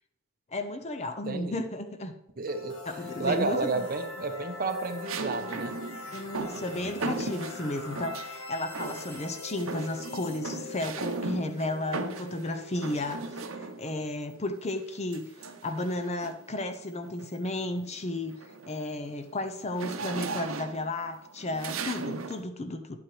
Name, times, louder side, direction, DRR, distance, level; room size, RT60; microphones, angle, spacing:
voice 1, 0.5-2.1 2.9-3.9 6.1-23.0, left 2 dB, 30° left, 9 dB, 0.7 m, -34 dB
voice 2, 1.3-1.6 2.4-2.8 3.2-5.8, right 3 dB, 45° right, 7 dB, 0.9 m, -31 dB
sound 1, 2.4-14.3, left 2 dB, 75° left, 1.9 m, -43 dB
sound 2, 3.2-3.7 5.0-8.4 8.7-9.3 9.6-14.0 15.1-16.5 17.0-17.3 17.6-22.4, right 3 dB, 75° right, 0.8 m, -37 dB
10.5 x 8.8 x 3.2 m, 0.86 s
head